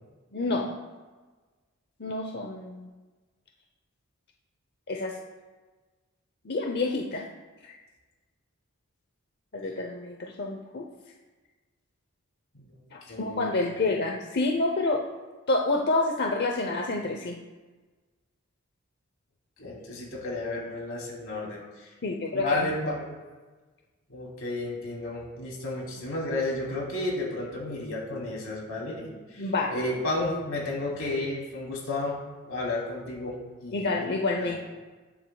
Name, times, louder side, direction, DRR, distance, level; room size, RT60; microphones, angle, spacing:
voice 1, 0.3-0.7 2.0-2.9 4.9-5.2 6.4-7.3 7.6-7.7 9.5-10.9 12.9-15.0 15.5-17.4 22.0-22.7 29.4-29.7 33.7-34.6, left 2 dB, 50° left, 1 dB, 0.8 m, -28 dB
voice 2, 13.1-13.9 19.6-21.9 22.3-23.1 24.1-29.4 29.7-32.2 32.4-33.9 34.4-34.6, left 2 dB, 85° left, -2 dB, 3.0 m, -32 dB
19.5 x 7.6 x 2.3 m, 1.3 s
head